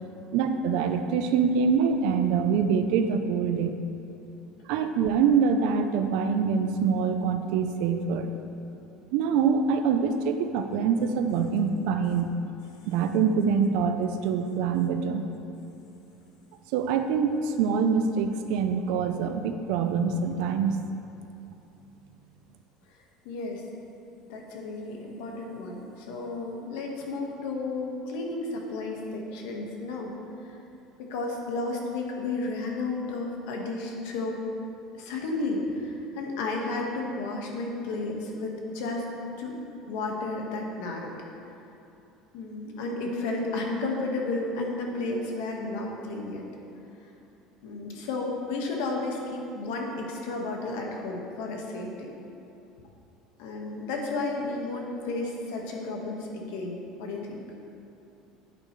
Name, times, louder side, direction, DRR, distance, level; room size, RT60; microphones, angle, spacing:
voice 1, 0.3-3.7 4.7-8.3 9.1-12.4 12.9-15.2 16.7-20.8, right 6 dB, 65° right, 7 dB, 0.6 m, -25 dB
voice 2, 23.2-23.6 24.3-30.1 31.0-34.4 35.0-39.1 39.4-39.6 39.9-41.1 42.3-46.4 47.6-52.1 53.4-57.4, left 2 dB, 80° left, 0 dB, 1.5 m, -32 dB
10.5 x 8.9 x 3.2 m, 2.8 s
cardioid pair, 170°, 0 cm